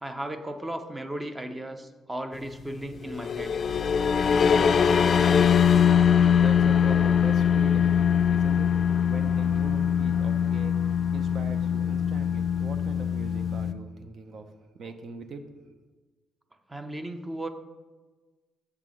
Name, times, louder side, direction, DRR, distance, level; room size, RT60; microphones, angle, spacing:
voice 1, 0.0-3.6 16.7-17.5, right 1 dB, 15° right, 7 dB, 0.6 m, -35 dB
sound 1, 3.0-13.7, left 8 dB, 50° left, 0.3 m, -22 dB
voice 2, 6.3-8.0 8.3-8.7 9.0-10.7 11.1-14.5 14.8-15.4 15.7-15.8, right 3 dB, 60° right, 7 dB, 0.7 m, -41 dB
6.7 x 3.6 x 6.2 m, 1.3 s
cardioid pair, 90°, 0 cm